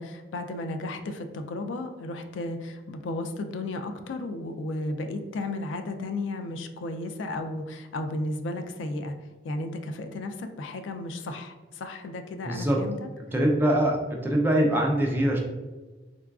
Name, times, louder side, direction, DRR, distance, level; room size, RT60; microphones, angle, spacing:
voice 1, 0.0-9.1 9.4-13.1 14.4-14.6, left 2 dB, 85° left, 7 dB, 0.3 m, -34 dB
voice 2, 12.5-12.9 13.2-15.4, right 1 dB, 10° right, -1 dB, 0.4 m, -23 dB
3.8 x 2.4 x 2.3 m, 1.2 s
head